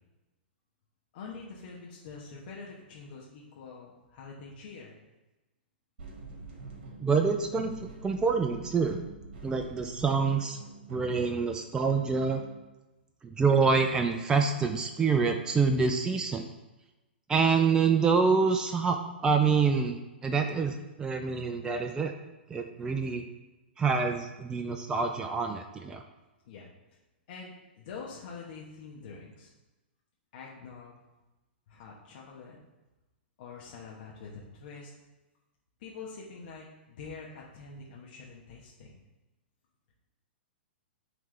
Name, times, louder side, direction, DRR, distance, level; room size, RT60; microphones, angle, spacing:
voice 1, 1.1-5.0 26.4-26.7 27.3-29.5 30.3-31.0 31.7-32.6 33.4-34.9 35.8-39.0, left 4 dB, 55° left, -4 dB, 1.1 m, -45 dB
sound 1, 6.0-12.6, right 3 dB, 55° right, 1.5 m, -46 dB
voice 2, 7.0-7.7 8.0-9.0 9.4-10.6 10.9-12.4 13.2-16.5 17.3-22.1 22.5-23.2 23.8-26.0, right 5 dB, 10° right, 5 dB, 0.4 m, -26 dB
9.1 x 3.3 x 3.3 m, 1.1 s
hypercardioid pair, 115°, 6 cm